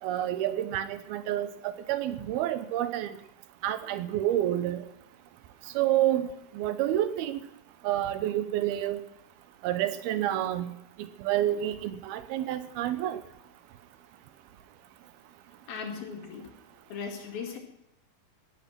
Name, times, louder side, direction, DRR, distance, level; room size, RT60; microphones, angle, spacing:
voice 1, 0.0-3.2 3.6-4.8 5.7-6.3 6.5-7.4 7.8-9.0 9.6-13.2, right 12 dB, 80° right, 12 dB, 2.7 m, -29 dB
voice 2, 15.7-16.5 16.9-17.6, left 6 dB, 70° left, 4 dB, 4.0 m, -37 dB
18.5 x 11.0 x 6.1 m, 0.85 s
omnidirectional pair, 4.5 m